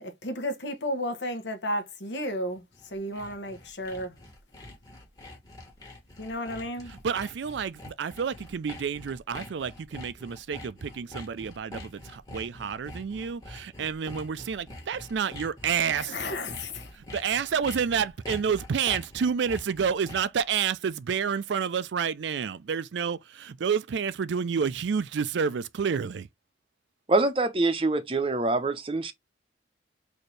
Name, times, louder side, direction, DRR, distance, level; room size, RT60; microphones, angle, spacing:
voice 1, 0.0-2.6 2.9-4.1 6.2-6.9 16.0-16.9, left 1 dB, 80° left, 1.0 m, -33 dB
Sawing, 2.6-20.4, left 2 dB, 20° left, 1.3 m, -44 dB
voice 2, 6.9-16.2 16.9-26.3, right 6 dB, 80° right, 0.4 m, -29 dB
voice 3, 27.1-29.1, right 2 dB, 30° right, 0.6 m, -25 dB
4.2 x 2.7 x 3.2 m
head